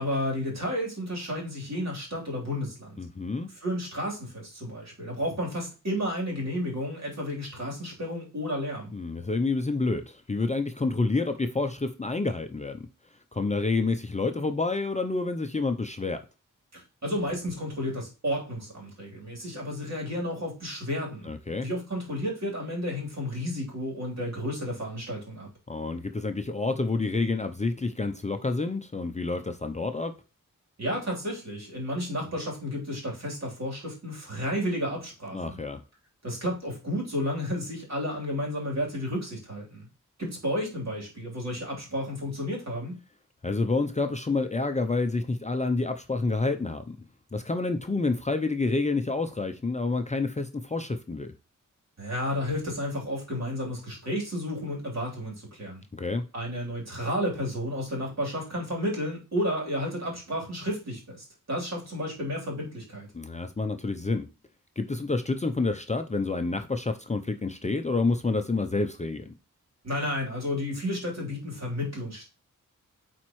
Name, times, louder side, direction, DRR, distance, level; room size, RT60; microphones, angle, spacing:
voice 1, 0.0-3.0 3.6-8.9 16.7-21.3 21.6-25.5 30.8-35.6 36.2-39.9 40.2-43.0 52.0-55.8 56.3-63.1 69.8-72.2, equal, 55° right, 3.5 m, -32 dB
voice 2, 3.0-3.5 8.9-12.9 13.3-16.2 21.3-21.7 25.7-30.1 35.3-35.8 43.4-47.0 47.3-51.3 55.9-56.2 63.1-64.3 64.8-69.3, left 3 dB, 20° left, 0.5 m, -28 dB
8.7 x 4.3 x 3.1 m
wide cardioid pair, 125°, 33 cm